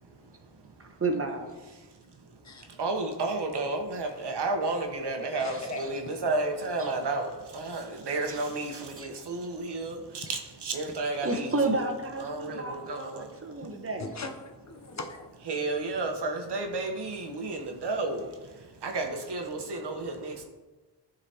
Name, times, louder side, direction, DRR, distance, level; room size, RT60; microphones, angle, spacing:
voice 1, 0.8-1.5 5.5-5.9 6.8-7.0 8.3-8.5 9.0-9.1 10.3-10.4 11.2-14.1, right 3 dB, 30° right, 4 dB, 1.0 m, -32 dB
voice 2, 2.8-11.5 12.2-13.3 15.5-18.3 18.8-20.4, right 2 dB, 65° right, 4 dB, 1.0 m, -32 dB
voice 3, 5.0-6.3 6.9-7.0 14.0-15.3, left 2 dB, 40° left, 5 dB, 0.7 m, -40 dB
10.5 x 4.0 x 2.8 m, 1.2 s
cardioid pair, 60°, 43 cm